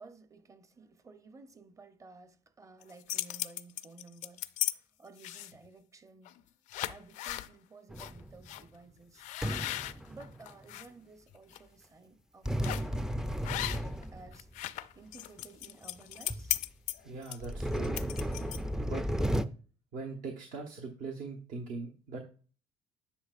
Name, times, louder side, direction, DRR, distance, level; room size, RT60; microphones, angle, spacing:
voice 1, 0.0-4.5 4.7-6.4 6.8-9.3 10.1-14.5 14.9-16.5, right 3 dB, 25° right, 0.7 m, -54 dB
sound 1, 2.8-4.7 5.2-5.7 6.2-6.4 6.7-7.5 8.0-8.1 8.5-8.6 9.2-10.9 11.3-11.6 12.6-12.9 13.4-14.0 14.3-18.8, left 15 dB, 70° left, 0.4 m, -37 dB
sound 2, 7.9-8.5 9.4-10.7 12.5-14.6 15.4-15.5 16.0-16.1 16.3-16.6 17.4-19.5, equal, 5° right, 0.4 m, -34 dB
voice 2, 17.0-18.0 18.8-19.0 19.9-22.2, right 4 dB, 70° right, 1.2 m, -40 dB
10.0 x 5.6 x 2.5 m
cardioid pair, 105°, 13 cm